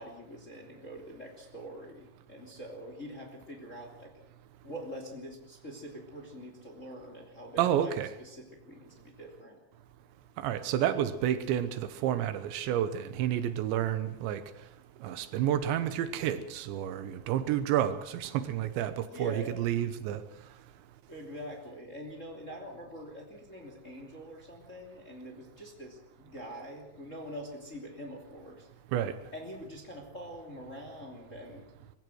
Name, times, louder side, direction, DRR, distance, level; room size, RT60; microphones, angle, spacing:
voice 1, 0.0-4.1 4.6-7.9 8.2-9.6 19.0-19.5 21.1-28.7 29.3-31.7, equal, 20° left, 2 dB, 2.5 m, -44 dB
voice 2, 7.6-8.1 10.4-14.4 15.0-20.2 28.9-29.2, right 10 dB, 75° right, 12 dB, 3.3 m, -30 dB
22.5 x 15.5 x 7.9 m, 0.84 s
omnidirectional pair, 5.3 m